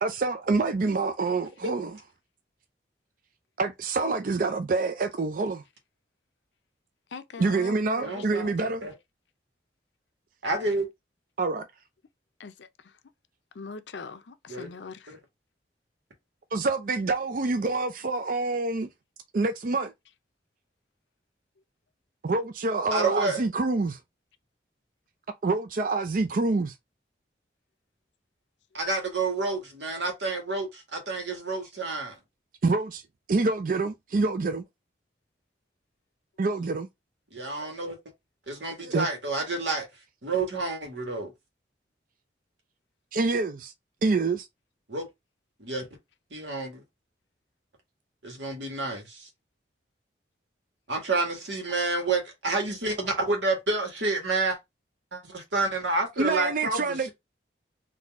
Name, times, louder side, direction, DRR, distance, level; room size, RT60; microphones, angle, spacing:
voice 1, 0.0-1.9 3.6-5.6 7.4-8.8 11.4-11.7 16.5-18.9 19.3-19.9 22.2-24.0 25.4-26.7 32.6-33.0 33.3-34.6 36.4-36.9 38.8-39.1 43.1-43.7 44.0-44.5 56.2-57.1, right 3 dB, 50° right, 0.4 m, -26 dB
voice 2, 7.1-8.5 12.4-12.7 13.5-15.2, left 4 dB, 80° left, 0.6 m, -41 dB
voice 3, 8.0-8.9 10.4-10.9 14.5-14.7 15.1-15.2 22.9-23.4 28.7-32.2 37.3-38.0 38.5-39.9 40.2-41.3 44.9-45.1 45.6-45.9 46.3-46.8 48.2-49.3 50.9-54.6 55.1-57.1, right 3 dB, 85° right, 1.7 m, -29 dB
4.0 x 2.7 x 3.5 m
head